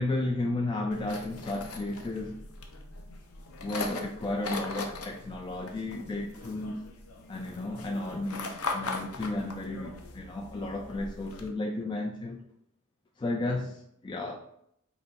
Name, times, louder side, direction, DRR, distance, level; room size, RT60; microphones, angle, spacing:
voice 1, 0.0-2.4 3.6-6.8 7.3-12.4 13.2-14.4, left 2 dB, 20° left, 0.3 m, -33 dB
sound 1, 0.9-11.5, left 3 dB, 85° left, 0.7 m, -40 dB
5.0 x 2.0 x 4.5 m
head